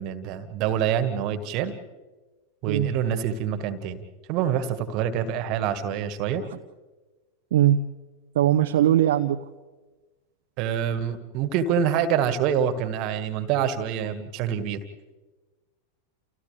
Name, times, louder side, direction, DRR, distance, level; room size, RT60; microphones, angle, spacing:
voice 1, 0.0-1.7 2.6-4.0 4.3-6.4 10.6-14.8, right 8 dB, 40° right, 11 dB, 1.8 m, -26 dB
voice 2, 7.5-7.8 8.3-9.5, right 12 dB, 55° right, 5 dB, 0.8 m, -20 dB
30.0 x 29.5 x 3.4 m, 1.2 s
figure-of-eight pair, 90°, 0 cm